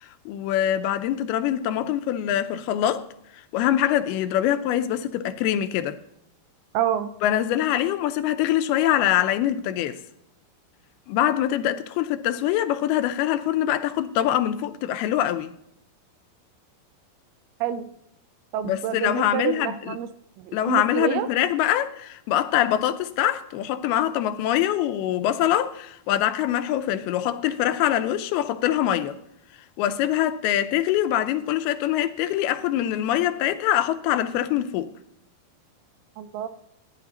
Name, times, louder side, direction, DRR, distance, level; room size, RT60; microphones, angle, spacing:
voice 1, 0.0-3.0 3.5-6.0 7.2-10.0 11.1-15.5 18.6-20.0 20.5-29.2 29.8-34.9, left 12 dB, 90° left, 2.7 m, -24 dB
voice 2, 6.7-7.1 17.6-17.9 18.5-20.1 20.4-21.3 36.2-36.5, right 10 dB, 85° right, 2.7 m, -27 dB
15.5 x 9.8 x 2.9 m
omnidirectional pair, 4.4 m